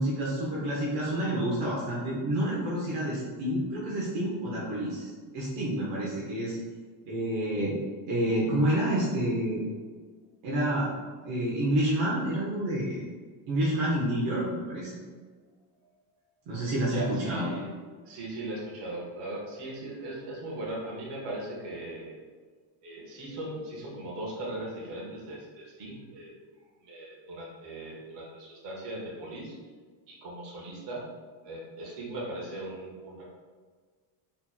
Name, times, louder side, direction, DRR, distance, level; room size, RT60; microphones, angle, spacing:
voice 1, 0.0-6.6 7.1-7.8 8.1-9.7 10.4-10.9 11.2-13.0 13.5-14.9 16.5-17.5, right 1 dB, 75° right, -6 dB, 1.1 m, -28 dB
voice 2, 16.9-17.7 18.0-22.1 22.8-26.4 26.8-29.5 30.1-31.1 31.4-33.3, right 1 dB, 60° right, -3 dB, 1.4 m, -38 dB
4.4 x 3.4 x 2.2 m, 1.5 s
cardioid pair, 145°, 47 cm